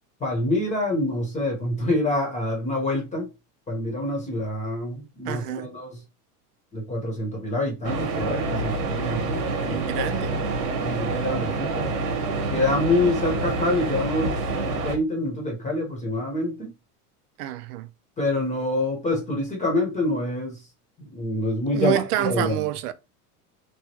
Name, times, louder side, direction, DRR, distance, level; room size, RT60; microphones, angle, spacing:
voice 1, 0.2-3.3 3.7-6.0 6.7-10.1 10.8-11.9 12.5-14.4 14.8-16.7 18.2-20.7 21.0-22.6, left 2 dB, 15° left, 0.8 m, -26 dB
voice 2, 5.3-5.7 9.7-10.3 17.4-17.9 21.7-22.9, right 13 dB, 80° right, 0.6 m, -27 dB
sound 1, 7.8-15.0, right 3 dB, 40° right, 1.0 m, -27 dB
3.1 x 2.3 x 2.9 m
supercardioid pair, 135°, 45 cm